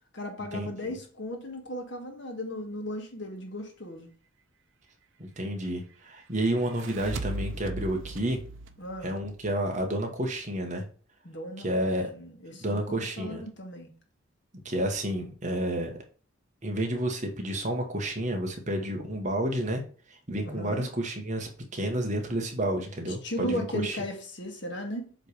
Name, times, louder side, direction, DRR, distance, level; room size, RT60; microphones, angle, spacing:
voice 1, 0.1-4.1 8.8-9.1 11.2-13.9 20.4-20.9 23.1-25.1, left 1 dB, 55° left, 3 dB, 1.6 m, -36 dB
voice 2, 5.2-8.4 9.0-10.8 11.6-12.1 12.6-13.4 14.6-15.9 16.6-19.8 20.1-24.0, right 1 dB, 35° right, 3 dB, 1.2 m, -30 dB
sound 1, 6.5-9.9, right 2 dB, 65° right, 0.7 m, -38 dB
7.6 x 3.2 x 5.0 m, 0.40 s
head